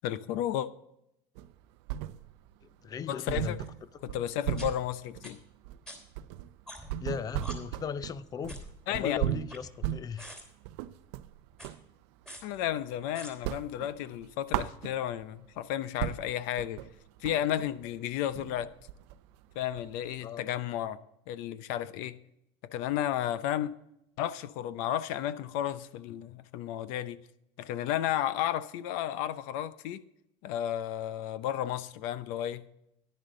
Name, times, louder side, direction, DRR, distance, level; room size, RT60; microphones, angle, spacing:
voice 1, 0.0-0.7 3.1-3.6 4.0-5.4 8.9-9.2 12.4-16.8 17.2-18.7 19.5-21.0 21.3-22.2 22.7-23.7 24.2-27.2 27.6-30.0 30.4-32.7, left 11 dB, 75° left, 0.7 m, -33 dB
sound 1, 1.3-2.5 2.8-2.9 3.3-11.9 12.2-13.0 13.3-15.3 15.7-15.8 16.0-20.1, right 13 dB, 80° right, 0.6 m, -36 dB
voice 2, 2.8-3.6 7.0-8.6 8.9-10.3 20.2-20.4, left 7 dB, 25° left, 0.5 m, -37 dB
sound 2, 3.7-3.8 4.6-4.7 5.2-5.3 5.9-6.0 6.7-7.0 7.4-7.5 8.5-8.7 9.3-9.9 10.2-10.4 11.5-11.7 12.3-12.4 13.1-13.3, equal, 5° left, 3.1 m, -44 dB
11.0 x 10.5 x 3.8 m
cardioid pair, 130°, 14 cm